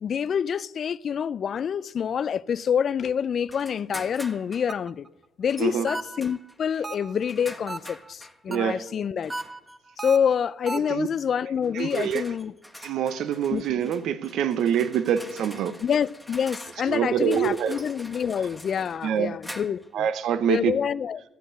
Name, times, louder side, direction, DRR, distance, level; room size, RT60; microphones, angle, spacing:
voice 1, 0.0-5.1 5.4-9.3 10.0-12.5 13.5-13.6 15.8-20.1 20.5-21.2, left 7 dB, 55° left, 0.4 m, -27 dB
sound 1, 3.5-4.7 5.5-5.8 6.2-8.4 9.2-9.8 10.8-11.0 11.6-19.9, equal, ahead, 1.5 m, -45 dB
sound 2, 4.7-5.1 5.9-6.4 6.8-7.3 7.7-8.1 8.5-8.9 9.3-11.0, right 2 dB, 20° right, 0.8 m, -35 dB
voice 2, 8.5-8.8 10.9-11.1 11.7-12.2 12.8-15.8 16.9-17.8 19.0-19.4 19.9-20.8, right 8 dB, 70° right, 0.7 m, -25 dB
13.0 x 7.8 x 6.3 m
supercardioid pair, 70°, 0 cm